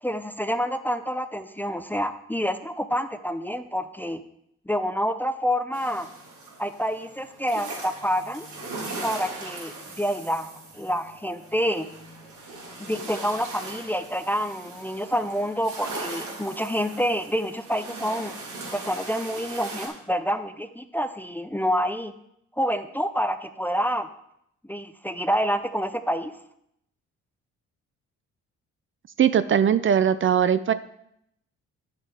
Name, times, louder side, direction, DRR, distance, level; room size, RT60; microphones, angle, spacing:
voice 1, 0.0-4.2 4.7-6.1 6.6-8.5 9.0-11.9 12.8-18.3 18.7-22.1 22.6-24.1 24.7-26.3, equal, 5° left, 10 dB, 0.5 m, -27 dB
sound 1, 5.7-19.9, right 2 dB, 70° right, 3.6 m, -39 dB
voice 2, 29.2-30.7, right 8 dB, 40° right, 14 dB, 0.5 m, -20 dB
9.2 x 6.9 x 4.9 m, 0.76 s
cardioid pair, 90°, 30 cm